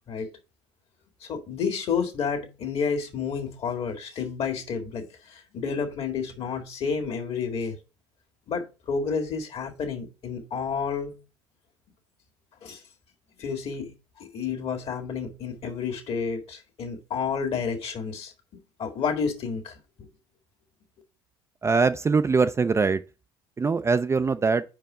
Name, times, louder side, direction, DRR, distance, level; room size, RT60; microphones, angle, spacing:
voice 1, 1.2-7.8 8.5-11.2 12.6-12.8 13.4-18.3 18.8-20.1, left 6 dB, 50° left, 1.9 m, -30 dB
voice 2, 21.6-23.0 23.6-24.6, right 4 dB, 20° right, 0.5 m, -22 dB
5.1 x 4.6 x 6.2 m
hypercardioid pair, 75°, 13 cm